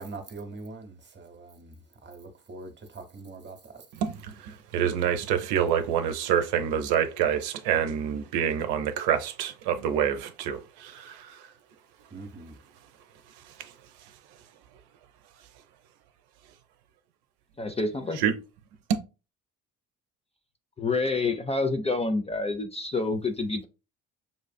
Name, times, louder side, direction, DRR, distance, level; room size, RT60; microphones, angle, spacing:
voice 1, 0.0-1.7 2.0-3.8 12.1-12.5, right 3 dB, 25° right, 0.9 m, -42 dB
voice 2, 3.9-11.5 13.4-13.7 18.2-18.3, right 9 dB, 65° right, 0.7 m, -27 dB
voice 3, 17.6-18.2 20.8-23.6, left 3 dB, 15° left, 0.4 m, -28 dB
5.4 x 2.4 x 2.2 m
hypercardioid pair, 50°, 43 cm